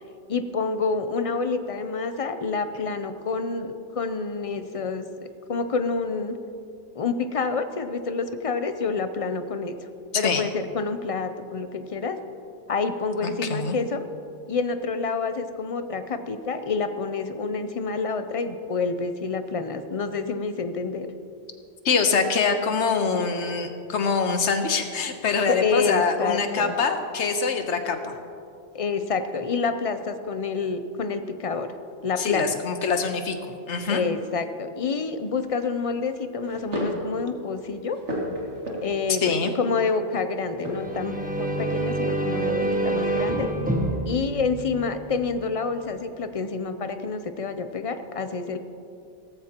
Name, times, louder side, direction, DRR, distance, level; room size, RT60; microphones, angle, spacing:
voice 1, 0.3-5.1 5.5-6.4 6.9-9.8 10.1-12.2 12.7-14.0 14.5-21.1 25.5-26.7 28.7-31.7 32.0-32.6 33.9-38.0 38.8-43.5 44.0-48.6, left 4 dB, 40° left, 9 dB, 0.5 m, -28 dB
voice 2, 13.2-13.8 21.8-28.2 32.2-33.4 33.6-34.0 39.2-39.5, left 5 dB, 80° left, 6 dB, 1.3 m, -24 dB
sound 1, 35.2-35.6 36.4-37.1 37.5-39.2 40.5-41.9 42.5-43.7, equal, 85° right, 2.6 m, -34 dB
sound 2, 40.6-45.3, right 2 dB, 10° right, 0.9 m, -27 dB
17.0 x 14.0 x 2.9 m, 2.6 s
omnidirectional pair, 1.2 m